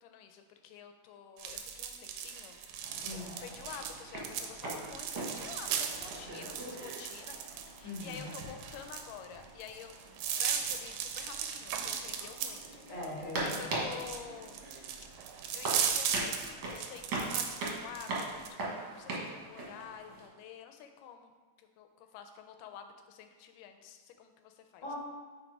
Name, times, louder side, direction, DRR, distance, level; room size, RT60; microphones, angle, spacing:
voice 1, 0.0-2.6 3.4-12.9 13.4-14.6 15.5-21.3 21.6-24.8, left 8 dB, 90° left, 6 dB, 2.2 m, -49 dB
sound 1, 1.4-18.5, right 8 dB, 85° right, 2.1 m, -37 dB
sound 2, 2.8-20.3, right 2 dB, 55° right, 1.4 m, -41 dB
voice 2, 7.8-8.3 12.9-13.9 24.8-24.9, left 2 dB, 25° left, -6 dB, 1.4 m, -41 dB
5.6 x 3.9 x 4.7 m, 1.4 s
omnidirectional pair, 3.7 m